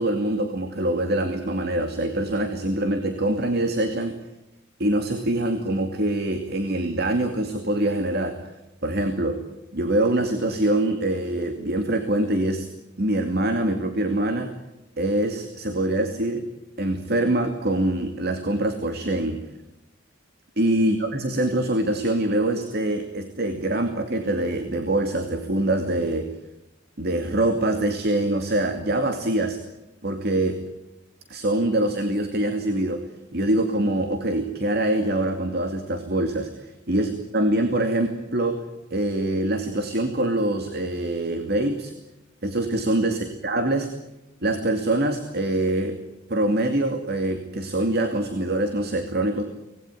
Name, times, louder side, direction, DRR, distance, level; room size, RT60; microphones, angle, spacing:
voice 1, 0.0-4.2 4.8-8.4 8.8-9.4 9.7-12.7 13.0-14.5 15.0-16.5 16.8-19.4 20.6-26.3 27.0-29.6 30.0-30.6 31.3-33.1 33.3-38.6 38.9-41.9 42.4-43.9 44.4-46.0 46.3-49.4, right 1 dB, 55° right, 6 dB, 2.5 m, -24 dB
25.0 x 20.0 x 9.5 m, 0.96 s
head